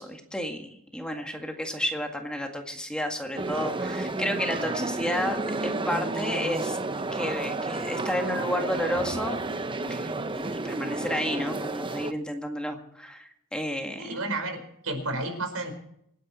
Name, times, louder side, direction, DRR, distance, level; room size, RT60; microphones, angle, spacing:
voice 1, 0.0-5.4 5.6-6.8 7.1-9.4 9.9-14.1, equal, 5° left, 3 dB, 2.0 m, -31 dB
sound 1, 3.4-12.1, right 2 dB, 25° right, 0.8 m, -31 dB
voice 2, 14.0-15.7, right 2 dB, 85° right, 6 dB, 4.8 m, -31 dB
26.0 x 10.0 x 4.4 m, 0.72 s
head